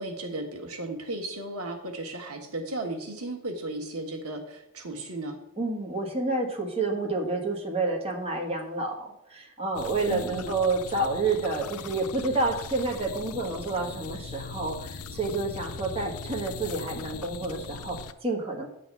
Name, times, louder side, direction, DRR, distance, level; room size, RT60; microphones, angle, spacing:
voice 1, 0.0-5.4 10.1-10.5, right 2 dB, 85° right, 4 dB, 1.4 m, -35 dB
voice 2, 5.6-18.7, right 3 dB, 30° right, -1 dB, 1.5 m, -29 dB
sound 1, 9.7-18.1, left 5 dB, 90° left, 0.5 m, -40 dB
9.7 x 4.0 x 7.0 m, 0.82 s
head